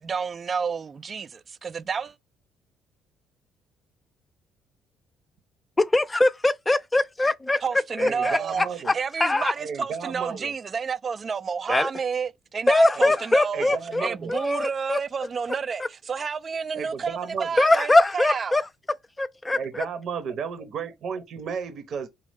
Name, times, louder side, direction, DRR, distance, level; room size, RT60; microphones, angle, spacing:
voice 1, 0.0-2.2 7.6-8.6 8.9-18.6, right 6 dB, 40° right, 0.5 m, -30 dB
voice 2, 5.8-7.6 8.0-8.9 9.2-9.5 11.7-11.9 12.7-15.0 15.8-15.9 17.6-18.7 19.2-19.9, left 2 dB, 20° left, 0.6 m, -22 dB
voice 3, 8.0-8.9 9.6-10.5 12.9-13.2 13.5-14.4 16.7-17.5 19.6-22.1, right 6 dB, 60° right, 0.9 m, -33 dB
5.1 x 2.4 x 3.5 m
supercardioid pair, 75°, 0 cm